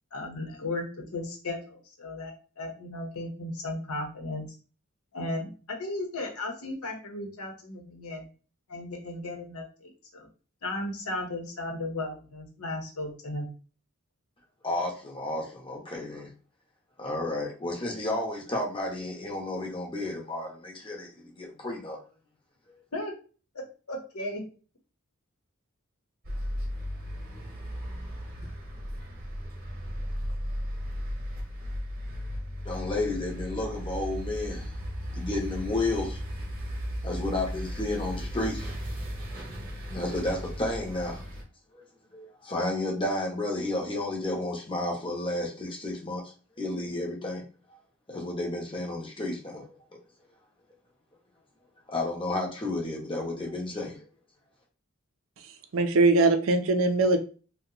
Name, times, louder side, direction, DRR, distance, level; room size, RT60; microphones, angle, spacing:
voice 1, 0.1-4.5 5.1-8.3 8.7-10.3 10.6-13.5 22.9-23.1 23.5-24.5, left 2 dB, 85° left, 2 dB, 0.9 m, -35 dB
voice 2, 14.6-16.3 17.0-22.0 22.7-22.8 32.6-34.7 35.1-36.2 37.0-38.7 39.3-39.4 39.9-41.2 41.7-41.8 42.1-47.4 48.1-49.6 51.9-54.0, left 2 dB, 25° left, 0 dB, 0.8 m, -32 dB
sound 1, 26.2-41.4, equal, 40° right, 0.9 m, -35 dB
voice 3, 55.7-57.2, right 3 dB, 65° right, 7 dB, 0.4 m, -21 dB
2.8 x 2.2 x 3.7 m, 0.37 s
head